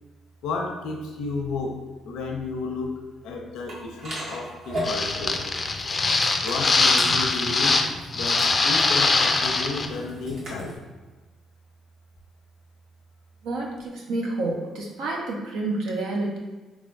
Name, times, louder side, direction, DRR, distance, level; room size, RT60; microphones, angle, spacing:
voice 1, 0.4-5.6 6.4-7.8 8.1-10.8, left 3 dB, 85° left, 2 dB, 0.6 m, -32 dB
sound 1, 3.7-10.8, equal, 65° right, 1.3 m, -36 dB
sound 2, 4.8-7.9 8.1-9.9, left 3 dB, 35° left, 0.3 m, -22 dB
voice 2, 13.4-16.4, right 2 dB, 90° right, -2 dB, 0.7 m, -29 dB
3.5 x 3.2 x 2.5 m, 1.2 s
cardioid pair, 90°, 0 cm